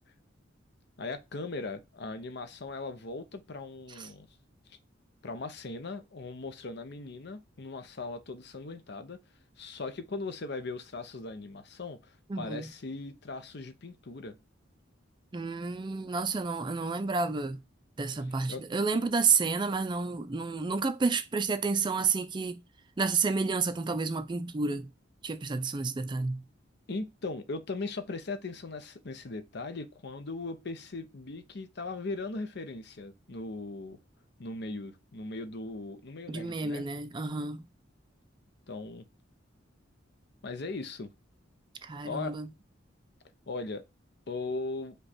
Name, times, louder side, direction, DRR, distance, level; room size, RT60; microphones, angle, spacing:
voice 1, 1.0-4.3 4.7-4.8 5.2-9.2 9.6-14.3 18.5-18.6 26.9-34.0 34.4-36.8 38.7-39.0 40.4-41.1 42.0-42.3 43.5-43.9 44.3-44.9, left 3 dB, 60° left, 0.7 m, -39 dB
voice 2, 12.3-12.7 15.3-17.6 18.0-22.6 23.0-24.9 25.2-26.4 36.3-37.7 41.8-42.5, right 4 dB, 25° right, 0.4 m, -30 dB
5.2 x 2.3 x 4.1 m
head